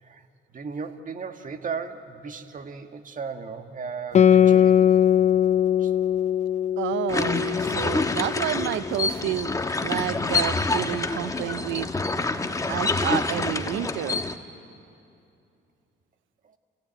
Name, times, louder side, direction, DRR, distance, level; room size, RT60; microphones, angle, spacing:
voice 1, 0.5-5.0 5.8-5.9 16.4-16.5, right 5 dB, 40° right, 1.5 m, -36 dB
Guitar, 4.1-9.1, left 9 dB, 35° left, 0.4 m, -21 dB
voice 2, 6.8-9.5 9.8-11.9 12.7-14.2, right 14 dB, 75° right, 0.4 m, -30 dB
sound 1, 7.1-14.3, left 3 dB, 15° left, 1.2 m, -27 dB
27.5 x 15.5 x 8.8 m
cardioid pair, 90°, 20 cm